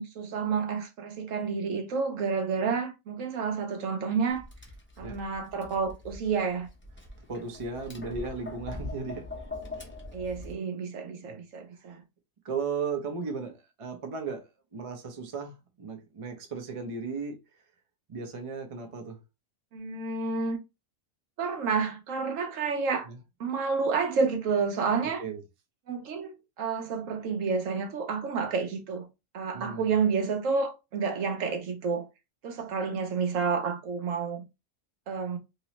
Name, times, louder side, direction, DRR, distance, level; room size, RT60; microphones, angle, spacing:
voice 1, 0.0-4.4 5.0-6.7 10.1-12.0 19.7-20.6 21.4-23.1 23.4-25.2 25.9-29.1 29.3-32.1 32.4-34.4 35.1-35.4, right 5 dB, 65° right, 1.0 m, -30 dB
Tap, 4.3-10.5, left 2 dB, 15° left, 0.4 m, -42 dB
voice 2, 7.3-9.3 11.3-11.4 12.4-17.4 18.1-19.2 23.1-23.2 25.2-25.4 29.5-30.0, right 5 dB, 35° right, 0.5 m, -36 dB
3.0 x 3.0 x 2.9 m
omnidirectional pair, 1.5 m